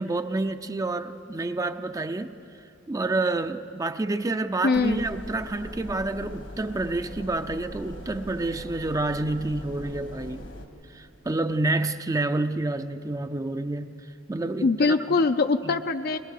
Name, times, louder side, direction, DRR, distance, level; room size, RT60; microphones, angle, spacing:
voice 1, 0.0-2.4 2.9-10.5 10.9-13.9 14.3-15.0 15.6-15.8, right 2 dB, 15° right, 9 dB, 0.4 m, -28 dB
voice 2, 4.6-5.0 14.6-16.2, left 4 dB, 50° left, 8 dB, 0.4 m, -22 dB
sound 1, 4.7-10.7, left 1 dB, 75° left, 1.7 m, -41 dB
22.0 x 20.5 x 6.6 m, 2.7 s
head